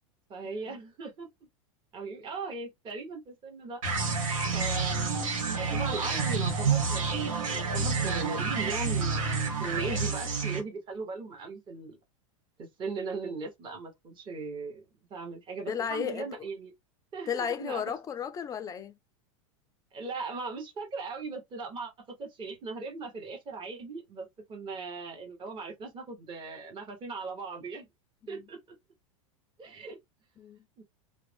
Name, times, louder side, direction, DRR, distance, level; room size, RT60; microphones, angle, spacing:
voice 1, 0.3-1.3 1.9-3.8 4.5-5.2 5.6-7.2 7.5-12.0 12.6-14.8 15.1-16.7 17.1-17.8 19.9-21.9 22.2-27.9 28.3-28.8 29.6-30.0 30.8-30.9, right 4 dB, 30° right, 1.0 m, -38 dB
sound 1, 3.8-10.6, right 4 dB, 85° right, 1.0 m, -29 dB
voice 2, 15.7-16.5 17.3-18.9 28.3-28.4 30.4-30.6, left 8 dB, 20° left, 0.4 m, -34 dB
2.4 x 2.0 x 3.3 m
hypercardioid pair, 115°, 17 cm